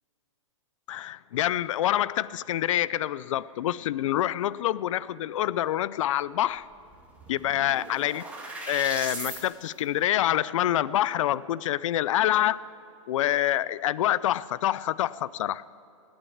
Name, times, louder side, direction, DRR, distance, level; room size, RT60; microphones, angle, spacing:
voice 1, 0.9-6.7 7.3-8.2 8.7-12.6 13.1-15.6, left 13 dB, 70° left, 19 dB, 0.4 m, -26 dB
sound 1, 6.6-6.7 6.9-9.4, right 2 dB, 10° right, 2.2 m, -38 dB
18.5 x 8.8 x 8.4 m, 2.7 s
hypercardioid pair, 150°, 17 cm